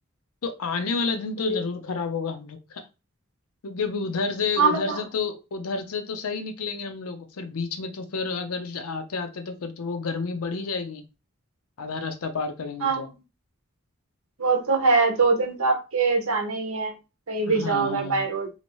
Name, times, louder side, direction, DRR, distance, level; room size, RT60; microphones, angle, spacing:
voice 1, 0.4-2.8 3.6-11.0 11.8-13.1 17.5-18.2, left 4 dB, 80° left, 0.5 m, -30 dB
voice 2, 4.6-5.0 12.8-13.0 14.4-16.9 17.3-18.5, right 4 dB, 75° right, 0.8 m, -23 dB
2.8 x 2.6 x 3.0 m
head